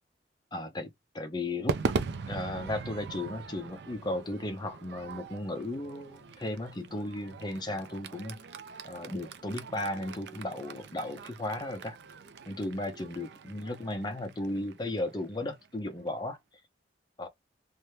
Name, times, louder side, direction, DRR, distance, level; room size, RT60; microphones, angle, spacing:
voice 1, 0.5-1.8 2.3-8.4 8.8-12.0 12.5-16.4 17.2-17.3, left 1 dB, 25° left, 0.6 m, -35 dB
Crowd / Fireworks, 1.7-16.1, right 4 dB, 60° right, 0.4 m, -40 dB
2.6 x 2.2 x 3.2 m
head